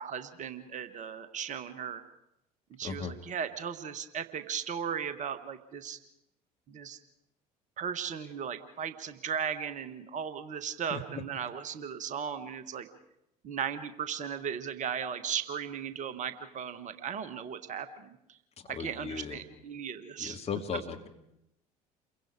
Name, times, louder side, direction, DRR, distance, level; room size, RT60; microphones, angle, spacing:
voice 1, 0.0-2.0 2.7-6.0 6.7-7.0 7.8-12.9 13.4-18.4 18.7-20.4, right 7 dB, 40° right, 11 dB, 1.5 m, -37 dB
voice 2, 2.8-3.2 10.9-11.0 18.7-19.4 20.2-21.1, left 6 dB, 30° left, 4 dB, 2.5 m, -37 dB
29.0 x 23.0 x 4.9 m, 0.83 s
figure-of-eight pair, 60°, 20 cm